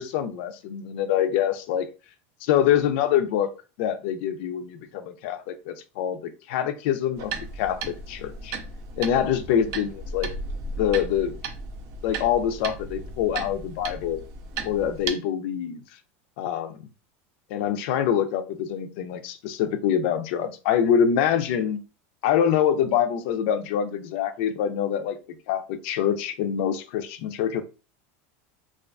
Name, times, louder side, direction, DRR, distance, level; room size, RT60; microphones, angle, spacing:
voice 1, 0.0-1.9 2.4-3.5 3.8-8.6 9.0-10.3 10.8-11.4 12.0-14.2 14.6-15.8 16.4-16.8 17.5-21.8 22.2-25.2 25.5-27.6, left 9 dB, 65° left, 0.4 m, -25 dB
sound 1, 7.2-15.1, right 3 dB, 50° right, 0.4 m, -35 dB
2.4 x 2.3 x 2.2 m
supercardioid pair, 145°, 7 cm